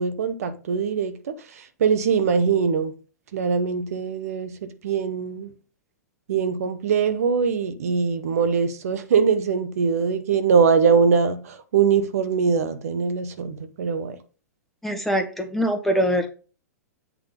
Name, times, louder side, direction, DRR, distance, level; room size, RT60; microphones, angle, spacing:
voice 1, 0.0-1.3 1.8-2.9 3.3-5.5 6.3-14.2, right 6 dB, 60° right, 0.9 m, -22 dB
voice 2, 14.8-16.3, equal, ahead, 1.4 m, -23 dB
8.5 x 3.7 x 5.2 m
figure-of-eight pair, 110°, 9 cm